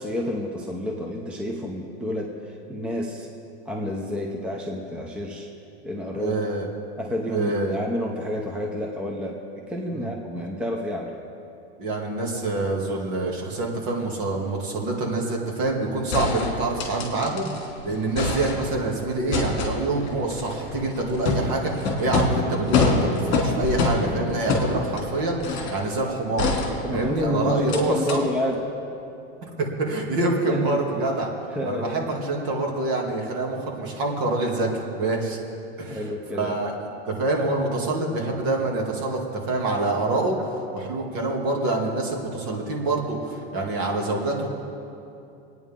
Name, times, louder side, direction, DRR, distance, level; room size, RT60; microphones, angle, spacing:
voice 1, 0.0-3.3 3.6-5.5 5.8-6.4 7.0-11.1 26.8-28.6 30.5-30.8 31.5-32.2 35.9-36.6, left 1 dB, 5° right, 0 dB, 0.6 m, -29 dB
voice 2, 6.2-6.7 7.3-7.8 9.9-10.1 11.8-17.5 17.8-25.4 25.7-26.5 26.9-28.2 29.4-31.3 31.6-34.7 35.0-35.4 35.8-36.0 36.4-36.7 37.1-40.4 40.7-44.5, right 2 dB, 50° right, -1 dB, 2.4 m, -26 dB
sound 1, 16.1-17.7 17.9-18.9 19.3-25.8 26.4-27.2 27.7-27.8 28.1-28.2, left 3 dB, 35° left, 2.6 m, -26 dB
25.0 x 9.4 x 3.7 m, 2.7 s
supercardioid pair, 155°, 33 cm